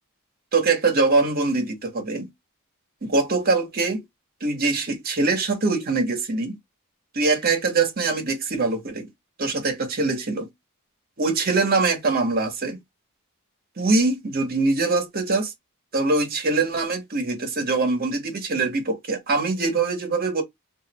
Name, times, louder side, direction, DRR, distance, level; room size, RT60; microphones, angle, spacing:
voice 1, 0.5-2.3 3.0-4.0 4.4-6.5 7.1-9.1 9.4-10.5 11.2-12.8 13.8-15.5 15.9-20.4, right 3 dB, 45° right, 0.9 m, -23 dB
3.1 x 2.4 x 2.8 m
head